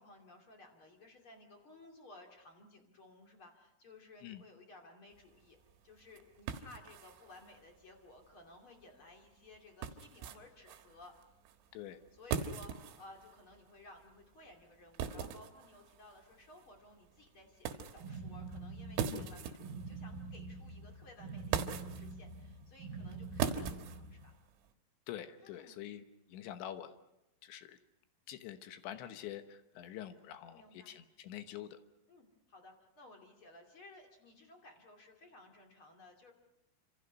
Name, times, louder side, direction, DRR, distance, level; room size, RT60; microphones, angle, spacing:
voice 1, 0.0-5.6 5.8-11.1 12.1-24.3 25.4-25.8 30.5-30.9 32.1-36.3, left 2 dB, 35° left, 2 dB, 2.5 m, -57 dB
sound 1, 5.1-24.7, right 7 dB, 75° right, 3.9 m, -43 dB
sound 2, 18.0-24.3, right 3 dB, 55° right, 2.7 m, -46 dB
voice 2, 25.1-26.0 26.3-26.9 27.4-27.8 28.3-31.8, left 11 dB, 70° left, 9 dB, 3.2 m, -46 dB
27.5 x 26.5 x 5.5 m, 0.90 s
omnidirectional pair, 5.8 m